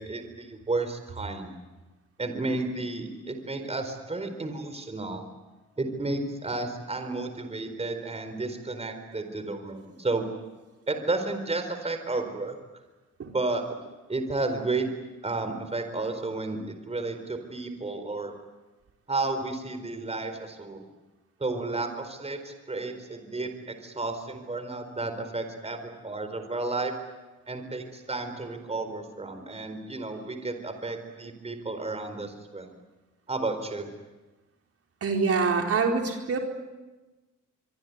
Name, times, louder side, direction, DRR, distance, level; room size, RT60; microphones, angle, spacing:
voice 1, 0.0-1.6 2.2-5.2 5.8-10.3 10.9-12.6 13.3-13.8 14.1-14.9 15.2-18.3 19.1-20.9 21.4-26.9 27.5-32.7 33.3-33.9, right 2 dB, 20° right, 7 dB, 4.5 m, -32 dB
voice 2, 35.0-36.4, right 4 dB, 50° right, 2 dB, 4.4 m, -25 dB
25.0 x 24.0 x 9.7 m, 1.2 s
cardioid pair, 90°, 30 cm